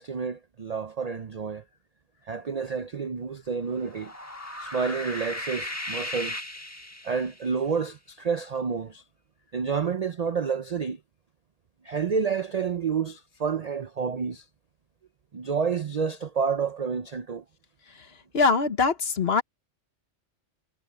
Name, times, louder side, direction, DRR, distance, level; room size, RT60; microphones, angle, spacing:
voice 1, 0.0-1.6 2.3-4.1 4.6-6.4 7.0-9.0 9.5-11.0 11.8-14.4 15.3-17.4, right 6 dB, 50° right, 0.5 m, -29 dB
sound 1, 3.7-7.5, left 1 dB, 10° left, 1.5 m, -36 dB
voice 2, 18.3-19.4, left 4 dB, 50° left, 1.4 m, -23 dB
omnidirectional pair, 1.3 m